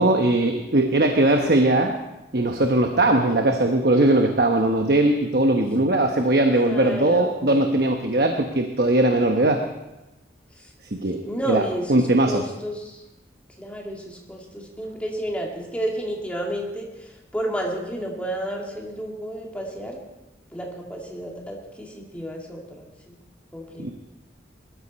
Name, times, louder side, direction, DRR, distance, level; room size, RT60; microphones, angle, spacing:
voice 1, 0.0-1.9 2.3-9.6 10.9-11.2 11.5-11.6 11.9-12.4 23.8-23.9, right 1 dB, 60° right, 4 dB, 1.1 m, -20 dB
voice 2, 6.2-7.8 10.6-10.7 11.2-13.0 13.6-20.0 20.5-23.1 23.5-23.9, right 1 dB, 5° left, -1 dB, 2.4 m, -31 dB
20.5 x 13.5 x 4.3 m, 0.98 s
head